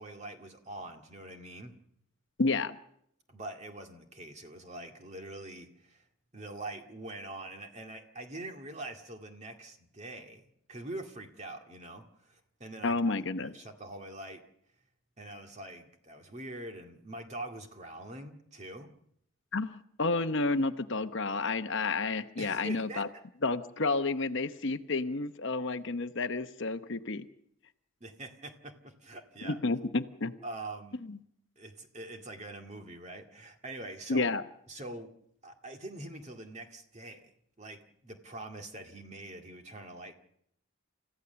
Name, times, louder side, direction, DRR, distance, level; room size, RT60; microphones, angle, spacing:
voice 1, 0.0-1.7 3.3-6.0 6.3-14.4 15.2-18.9 22.4-23.2 28.0-29.6 30.4-31.0 31.6-34.3 34.7-35.1 35.4-37.2 37.6-40.1, right 2 dB, 30° right, 4 dB, 2.1 m, -44 dB
voice 2, 2.4-2.7 12.8-13.5 19.5-23.1 23.4-27.3 29.4-30.3 34.1-34.4, left 3 dB, 55° left, 10 dB, 0.9 m, -30 dB
30.0 x 15.0 x 6.9 m, 0.72 s
head